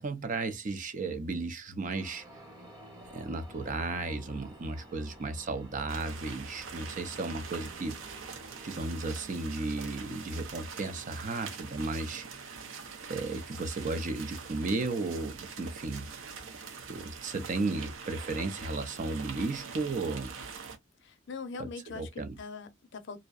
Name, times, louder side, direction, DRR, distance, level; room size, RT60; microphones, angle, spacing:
voice 1, 0.0-2.2 3.0-8.0 8.6-12.5 13.1-16.1 16.9-20.3 21.6-22.3, right 3 dB, 40° right, 0.5 m, -34 dB
sound 1, 1.9-8.8, equal, 20° right, 0.9 m, -52 dB
sound 2, 5.9-20.8, right 5 dB, 85° right, 0.6 m, -44 dB
voice 2, 21.0-23.2, left 4 dB, 60° left, 0.5 m, -42 dB
2.6 x 2.0 x 2.3 m
head